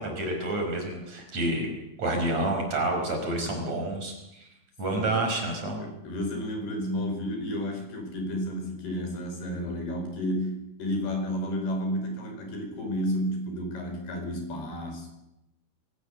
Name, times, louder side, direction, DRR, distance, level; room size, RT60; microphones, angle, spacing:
voice 1, 0.0-1.7 2.0-4.1 4.8-5.8, right 2 dB, 45° right, 3 dB, 5.9 m, -28 dB
voice 2, 3.2-3.7 4.9-5.2 5.8-15.1, equal, 85° left, 4 dB, 7.2 m, -32 dB
24.0 x 17.5 x 8.1 m, 0.88 s
omnidirectional pair, 4.4 m